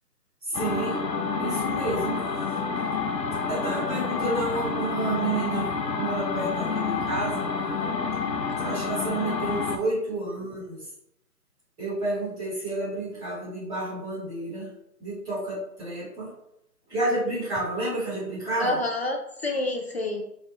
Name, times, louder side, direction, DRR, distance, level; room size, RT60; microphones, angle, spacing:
voice 1, 0.4-1.0 1.4-2.2 3.5-5.7 6.0-7.5 8.6-10.9 11.8-14.7 15.0-16.3 16.9-18.8, right 2 dB, 10° right, -11 dB, 1.6 m, -30 dB
sound 1, 0.5-9.8, left 5 dB, 80° left, 0.8 m, -28 dB
voice 2, 18.6-20.2, left 2 dB, 40° left, 1 dB, 0.5 m, -28 dB
4.3 x 3.4 x 2.6 m, 0.76 s
figure-of-eight pair, 150°, 49 cm